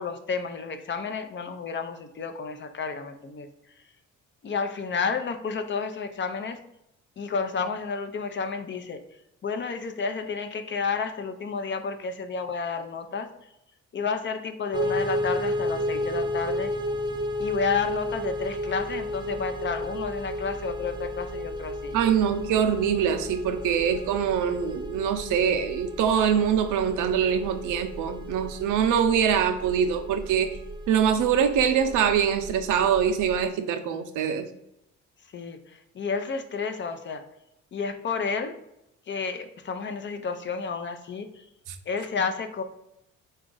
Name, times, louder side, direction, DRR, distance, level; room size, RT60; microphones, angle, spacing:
voice 1, 0.0-3.5 4.4-6.6 7.2-9.0 9.4-13.5 13.9-16.7 17.4-21.9 35.3-37.2 37.7-38.6 39.1-41.5 41.9-42.6, left 5 dB, 40° left, 7 dB, 0.5 m, -31 dB
sound 1, 14.7-33.5, equal, 15° right, 0.5 m, -33 dB
voice 2, 21.9-30.6 30.9-34.5 41.7-41.8, right 8 dB, 80° right, 7 dB, 0.5 m, -24 dB
3.9 x 2.4 x 3.8 m, 0.83 s
cardioid pair, 90°, 30 cm